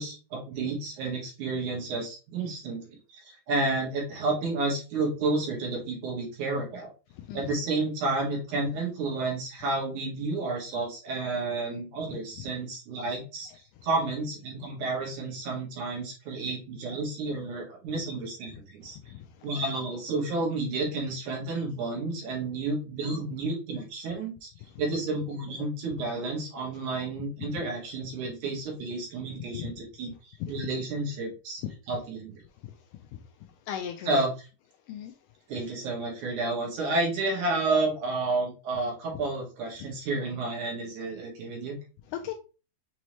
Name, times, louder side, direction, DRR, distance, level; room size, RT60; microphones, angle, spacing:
voice 1, 0.0-6.9 7.3-13.5 13.8-19.1 19.4-24.5 24.8-31.6 31.9-32.3 34.0-34.5 35.5-41.8, right 3 dB, 65° right, -1 dB, 2.7 m, -31 dB
voice 2, 33.7-34.2 34.9-35.1 42.1-42.3, left 10 dB, 80° left, 6 dB, 1.9 m, -36 dB
6.2 x 2.8 x 3.0 m, 0.33 s
omnidirectional pair, 4.0 m